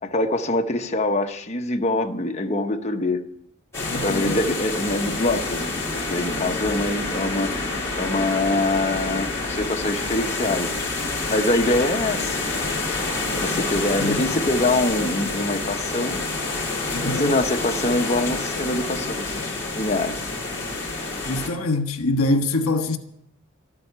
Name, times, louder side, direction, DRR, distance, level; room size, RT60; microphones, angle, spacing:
voice 1, 0.0-3.2 4.0-12.4 13.3-16.2 17.0-19.4 19.8-20.2, left 2 dB, 30° left, 0.9 m, -24 dB
sound 1, 3.7-21.5, left 3 dB, 10° left, 3.4 m, -28 dB
voice 2, 3.9-4.4 14.0-14.2 16.9-17.3 21.2-23.0, left 2 dB, 75° left, 1.3 m, -24 dB
13.0 x 7.7 x 9.9 m
head